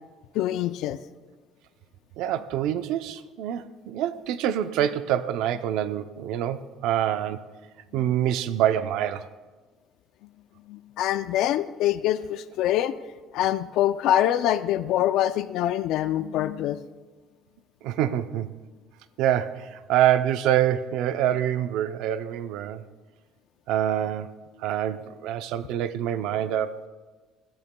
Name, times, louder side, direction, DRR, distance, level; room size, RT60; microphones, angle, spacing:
voice 1, 0.3-1.0 7.9-8.1 10.7-13.0 13.3-16.8, left 12 dB, 65° left, 12 dB, 0.4 m, -25 dB
voice 2, 2.2-7.5 7.9-9.3 17.8-18.5 19.2-22.8 23.7-24.3 24.6-26.9, right 11 dB, 80° right, 12 dB, 0.5 m, -26 dB
19.0 x 13.5 x 2.2 m, 1.3 s
cardioid pair, 165°, 0 cm